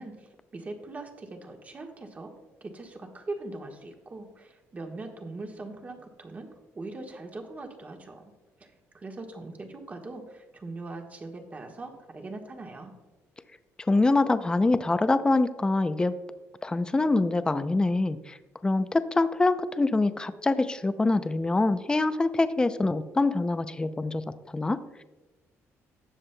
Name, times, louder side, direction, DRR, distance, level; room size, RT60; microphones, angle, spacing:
voice 1, 0.0-2.3 2.6-8.3 8.6-12.9, right 2 dB, 30° right, 3 dB, 1.4 m, -41 dB
voice 2, 13.9-16.1 16.6-18.4 18.6-24.2 24.5-25.0, left 2 dB, 15° left, 11 dB, 0.5 m, -25 dB
17.5 x 7.3 x 2.2 m, 1.1 s
cardioid pair, 115°, 6 cm